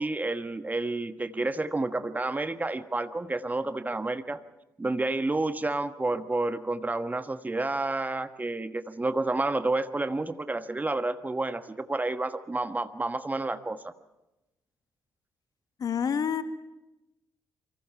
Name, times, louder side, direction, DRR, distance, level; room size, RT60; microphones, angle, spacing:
voice 1, 0.0-4.4 4.8-13.9, right 2 dB, 20° right, 11 dB, 1.3 m, -30 dB
voice 2, 15.8-16.4, left 7 dB, 50° left, 10 dB, 1.7 m, -27 dB
28.0 x 25.0 x 4.5 m, 0.98 s
figure-of-eight pair, 45°, 8 cm